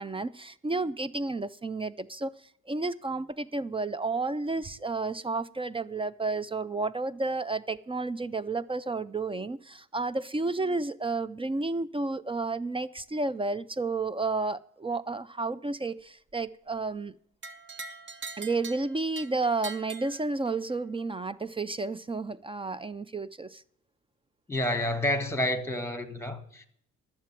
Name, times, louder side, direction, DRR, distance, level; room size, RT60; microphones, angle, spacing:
voice 1, 0.0-2.3 2.7-17.1 18.4-23.6, right 3 dB, 20° right, 0.4 m, -31 dB
sound 1, 17.4-20.8, right 4 dB, 40° right, 1.2 m, -43 dB
voice 2, 24.5-26.7, left 1 dB, 10° left, 1.4 m, -29 dB
11.5 x 7.5 x 7.4 m
cardioid pair, 90°, 30 cm